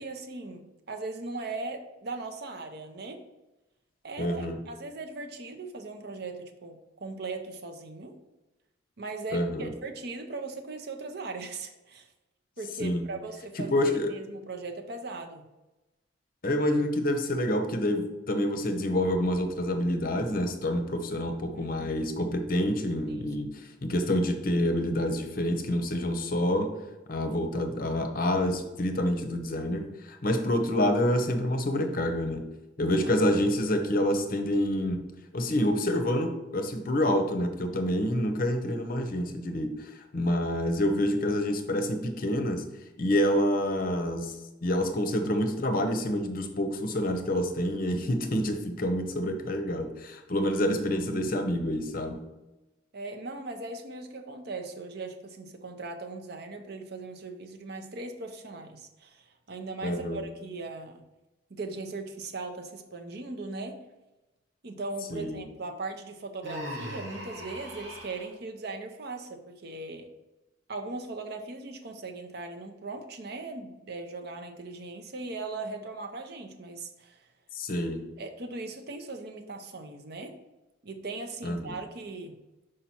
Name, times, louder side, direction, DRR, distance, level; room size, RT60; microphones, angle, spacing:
voice 1, 0.0-3.2 4.0-8.1 9.0-12.1 12.6-15.5 21.5-22.0 23.1-23.5 33.0-33.2 52.9-61.0 61.5-63.8 64.6-70.1 70.7-77.2 78.2-80.3 80.8-82.4, right 3 dB, 60° right, 5 dB, 0.8 m, -39 dB
voice 2, 4.2-4.6 9.3-9.7 12.8-13.0 13.6-14.1 16.4-23.5 23.8-26.7 27.1-32.4 32.8-35.0 35.3-42.6 43.0-44.4 44.6-52.2 59.8-60.2 65.1-65.4 77.5-78.0 81.4-81.7, left 1 dB, 50° left, 7 dB, 0.8 m, -27 dB
Human voice, 66.4-68.3, equal, 85° right, 2.2 m, -39 dB
5.7 x 5.0 x 4.3 m, 1.0 s
head